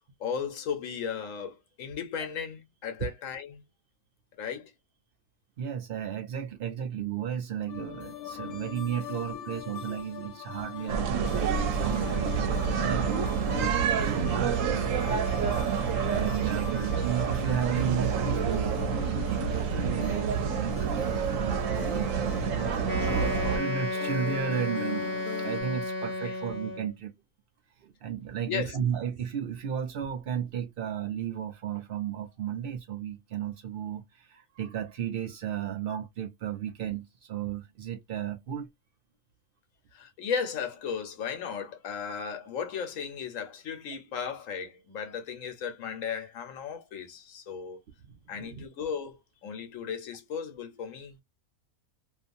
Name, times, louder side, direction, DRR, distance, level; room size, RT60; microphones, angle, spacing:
voice 1, 0.2-3.6 4.4-4.7 9.3-10.1 26.2-26.3 28.5-28.8 39.9-47.8 48.3-51.2, left 6 dB, 60° left, 1.1 m, -36 dB
voice 2, 5.6-15.2 15.6-27.1 27.8-38.7 48.1-48.6, right 9 dB, 90° right, 0.5 m, -34 dB
sound 1, 7.7-25.6, left 12 dB, 90° left, 1.1 m, -42 dB
sound 2, 10.9-23.6, right 6 dB, 65° right, 0.9 m, -28 dB
Wind instrument woodwind instrument, 22.8-26.9, left 2 dB, 15° left, 0.8 m, -32 dB
2.7 x 2.4 x 2.5 m
omnidirectional pair, 1.6 m